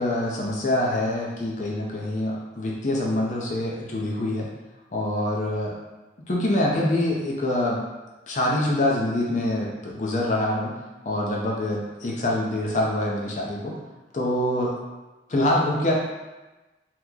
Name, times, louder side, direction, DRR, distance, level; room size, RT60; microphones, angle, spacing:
voice 1, 0.0-4.5 4.9-5.8 6.3-7.8 8.3-10.7 11.0-13.7 14.1-14.7 15.3-15.9, left 1 dB, 40° left, -3 dB, 0.5 m, -25 dB
2.9 x 2.0 x 3.6 m, 1.1 s
head